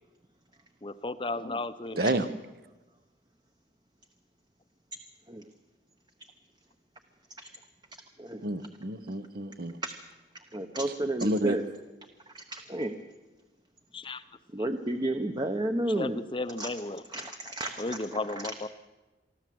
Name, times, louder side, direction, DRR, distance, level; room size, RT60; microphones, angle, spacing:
voice 1, 0.8-2.3 13.9-14.2 14.6-14.7 16.0-17.3 17.8-18.7, left 2 dB, 25° left, 13 dB, 0.7 m, -35 dB
voice 2, 2.0-2.3 8.4-9.8 11.2-11.6, right 1 dB, 55° right, 13 dB, 1.0 m, -29 dB
voice 3, 10.5-11.6 12.3-12.9 14.5-16.2 16.6-16.7 17.1-18.0, right 1 dB, 25° right, 6 dB, 0.9 m, -31 dB
24.5 x 14.0 x 7.7 m, 1.2 s
head